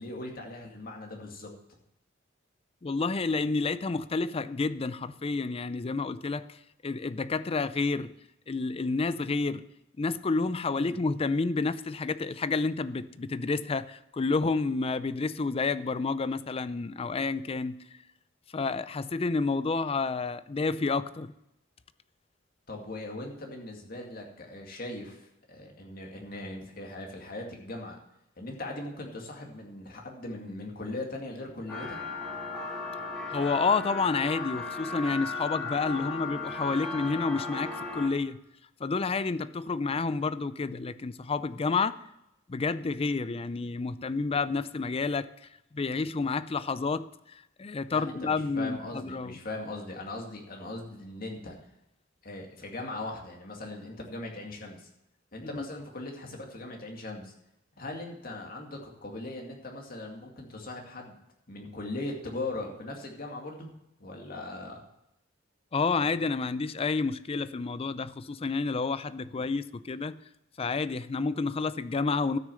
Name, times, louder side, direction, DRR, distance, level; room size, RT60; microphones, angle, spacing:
voice 1, 0.0-1.5 10.8-11.0 22.7-28.0 28.4-32.0 47.9-51.6 52.2-54.9 55.3-57.3 57.8-61.2 61.5-63.7 64.0-64.8 69.3-69.4, left 2 dB, 50° left, 1 dB, 2.2 m, -39 dB
voice 2, 2.8-6.6 6.8-8.1 8.5-9.6 10.0-17.7 18.5-21.3 33.3-38.4 38.8-42.0 42.5-45.3 45.7-49.4 55.4-55.6 65.7-70.2 70.6-72.4, left 4 dB, 30° left, 14 dB, 0.4 m, -29 dB
sound 1, 31.7-38.1, left 3 dB, 5° left, 1.7 m, -36 dB
13.0 x 6.4 x 7.6 m, 0.85 s
head